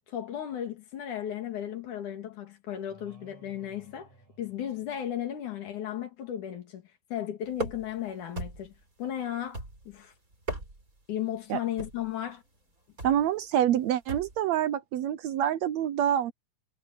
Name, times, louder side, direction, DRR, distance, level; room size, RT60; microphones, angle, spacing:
voice 1, 0.1-4.1 4.4-6.8 7.1-8.7 9.0-10.1 11.1-12.4, left 11 dB, 75° left, 3.7 m, -35 dB
sound 1, 2.9-5.4, right 2 dB, 50° right, 7.9 m, -57 dB
sound 2, 7.5-8.0 8.4-8.8 9.5-10.0 10.3-11.0 11.8-12.1 13.0-13.3 14.1-14.4, right 2 dB, 25° right, 5.3 m, -37 dB
voice 2, 13.0-16.3, right 10 dB, 75° right, 1.8 m, -26 dB
omnidirectional pair, 3.6 m